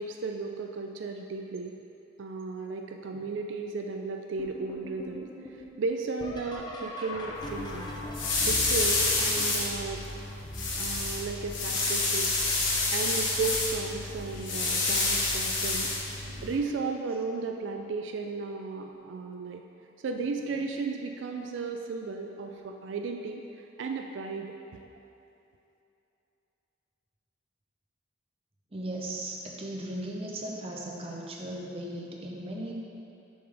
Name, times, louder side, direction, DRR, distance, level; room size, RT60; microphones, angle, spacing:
voice 1, 0.0-1.8 2.2-7.9 8.5-10.0 10.8-12.6 12.9-15.9 16.4-19.6 20.0-23.4 23.8-24.8, right 4 dB, 75° right, 3 dB, 0.3 m, -34 dB
sound 1, 4.4-12.1 12.7-13.3 13.7-14.4 15.6-15.7 16.4-16.8 18.9-19.0 21.4-21.5, left 1 dB, 20° left, 0.6 m, -42 dB
sound 2, 7.3-16.6, left 2 dB, 80° left, 1.0 m, -29 dB
voice 2, 28.7-32.7, right 1 dB, 30° right, -2 dB, 0.7 m, -37 dB
6.7 x 5.5 x 3.4 m, 2.9 s
head